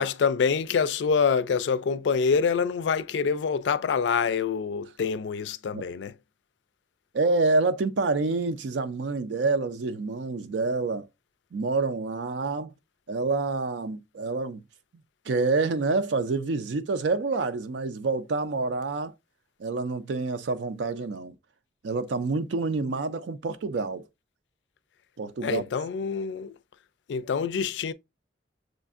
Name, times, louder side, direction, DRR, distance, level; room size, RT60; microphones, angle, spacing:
voice 1, 0.0-6.1 25.4-26.5 27.1-27.9, left 6 dB, 85° left, 0.4 m, -26 dB
voice 2, 7.1-11.1 11.5-12.7 13.1-14.6 15.3-19.1 19.6-21.3 21.8-24.0 25.2-25.6, right 3 dB, 85° right, 0.4 m, -27 dB
6.2 x 2.5 x 2.4 m
head